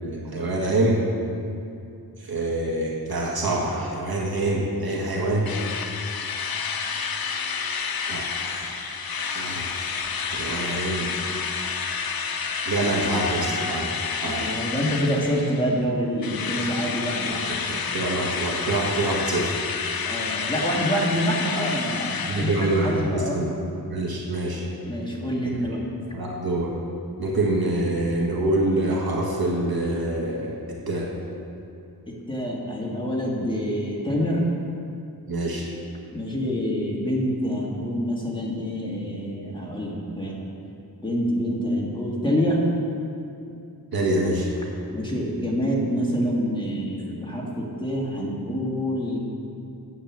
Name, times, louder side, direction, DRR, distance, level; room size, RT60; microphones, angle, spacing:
voice 1, 0.0-1.0 2.2-5.5 8.1-8.7 9.2-9.8 10.3-11.1 12.6-13.9 14.2-14.4 17.7-19.6 22.3-23.5 23.9-24.6 26.1-26.7 27.2-31.1 35.3-35.6 43.9-44.5, right 2 dB, 65° right, -3 dB, 1.7 m, -25 dB
Drill, 5.5-15.8 16.2-23.1, left 6 dB, 65° left, 0.8 m, -30 dB
voice 2, 14.2-17.5 20.0-23.4 24.9-25.8 32.1-34.5 36.1-40.5 41.0-42.6 44.9-49.2, equal, 10° left, -4 dB, 2.4 m, -26 dB
9.9 x 8.3 x 7.6 m, 2.6 s
wide cardioid pair, 110°, 39 cm